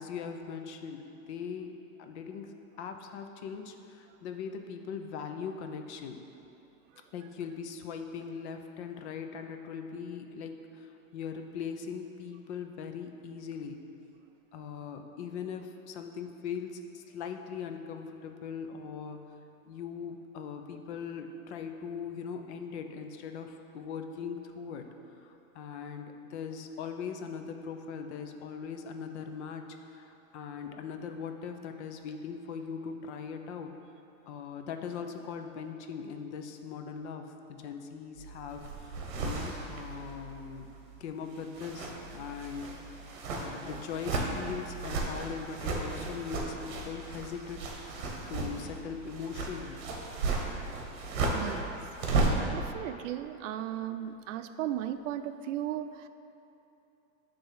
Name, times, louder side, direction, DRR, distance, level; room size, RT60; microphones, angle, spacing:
voice 1, 0.0-1.7 2.0-2.5 2.8-6.2 7.1-13.8 14.5-19.2 19.7-24.9 25.2-33.7 34.3-40.7 41.0-42.7 43.3-49.8, left 6 dB, 55° left, 6 dB, 0.7 m, -40 dB
sound 1, 38.2-41.0 41.3-52.5, right 3 dB, 50° right, 1.3 m, -35 dB
voice 2, 51.3-51.8 52.5-56.1, right 11 dB, 65° right, 10 dB, 0.5 m, -36 dB
9.1 x 3.5 x 5.6 m, 2.8 s
supercardioid pair, 150°, 41 cm